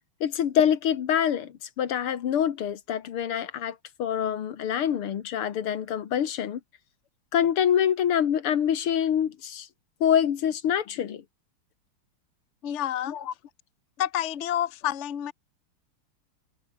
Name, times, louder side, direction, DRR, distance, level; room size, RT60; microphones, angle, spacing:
voice 1, 0.2-6.6 7.3-9.7 10.0-11.2 13.1-13.3, left 9 dB, 80° left, 2.4 m, -25 dB
voice 2, 12.6-13.2 14.0-15.3, left 11 dB, 40° left, 1.1 m, -29 dB
omnidirectional pair, 2.4 m